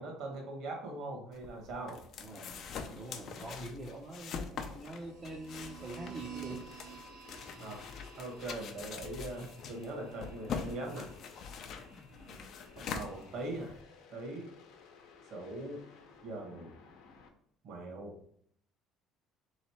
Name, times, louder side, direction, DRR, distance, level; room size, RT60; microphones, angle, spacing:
voice 1, 0.0-2.0 7.6-7.8 8.2-11.1 12.8-13.7 14.1-14.5 15.3-15.8 16.2-16.7 17.6-18.2, right 2 dB, 50° right, 1 dB, 1.2 m, -41 dB
sound 1, 1.3-13.8, left 6 dB, 45° left, 0.5 m, -44 dB
voice 2, 2.2-2.6 2.9-6.7 7.6-7.8 12.2-12.5, right 1 dB, 25° right, -2 dB, 0.6 m, -45 dB
sound 2, 4.7-17.3, left 5 dB, 85° left, 0.8 m, -57 dB
sound 3, 4.7-13.5, right 7 dB, 70° right, 0.9 m, -52 dB
3.8 x 3.2 x 4.2 m, 0.65 s
cardioid pair, 165°, 0 cm